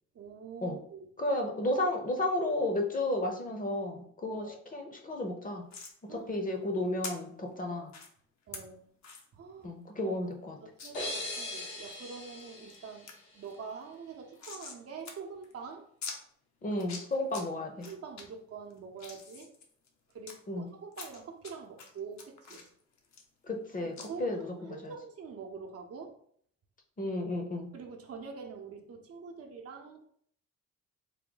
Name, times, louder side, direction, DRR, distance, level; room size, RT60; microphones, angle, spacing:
voice 1, 0.1-1.1 4.3-4.5 6.1-6.3 7.7-7.8 8.5-8.9 9.3-9.7 10.0-10.2 10.6-13.1 13.3-15.8 17.8-19.5 20.1-22.7 24.0-24.4 24.7-26.2 27.7-30.1, right 5 dB, 50° right, 2 dB, 0.7 m, -45 dB
voice 2, 1.2-5.6 6.0-7.9 9.6-10.6 16.6-17.9 20.5-20.7 23.5-23.9 24.2-24.9 27.0-27.7, left 1 dB, 25° left, 3 dB, 0.7 m, -33 dB
sound 1, 5.7-5.9 7.0-7.1 7.9-8.1 8.5-8.6 9.0-9.2 9.6-9.7 10.0-10.1 10.8-10.9 11.4-12.0 12.4-12.8 13.1-13.2 13.4-14.8 15.0-15.1 15.4-15.5 16.0-16.2 16.7-17.4 17.8-18.2 18.7-20.3 20.9-21.5 21.8-23.7 24.0-24.1, left 5 dB, 65° left, 0.8 m, -44 dB
sound 2, 10.9-13.7, left 1 dB, 90° left, 1.5 m, -40 dB
3.6 x 2.2 x 3.8 m, 0.62 s
cardioid pair, 90°, 30 cm